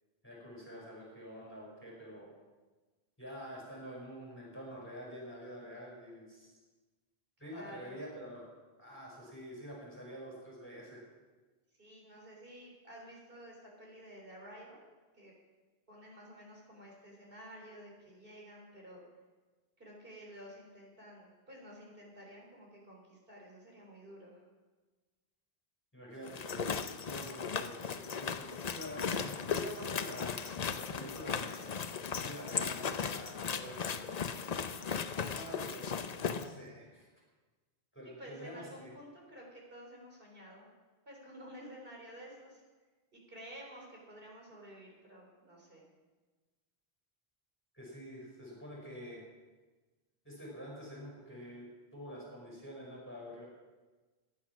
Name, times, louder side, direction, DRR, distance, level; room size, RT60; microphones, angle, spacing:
voice 1, 0.2-2.3 3.2-6.5 7.4-8.5 8.8-11.1 25.9-26.8 27.0-30.5 30.7-31.6 32.1-34.2 35.2-37.1 37.9-38.9 47.7-49.2 50.3-53.4, equal, 10° left, -4 dB, 5.0 m, -47 dB
voice 2, 7.5-8.1 11.8-14.9 15.1-15.3 15.9-19.0 19.8-24.4 38.2-40.7 41.1-42.6 43.1-45.8, equal, 60° right, -2 dB, 3.8 m, -52 dB
sound 1, 26.2-36.5, left 6 dB, 45° left, 0.7 m, -37 dB
15.0 x 10.5 x 6.0 m, 1.3 s
omnidirectional pair, 1.1 m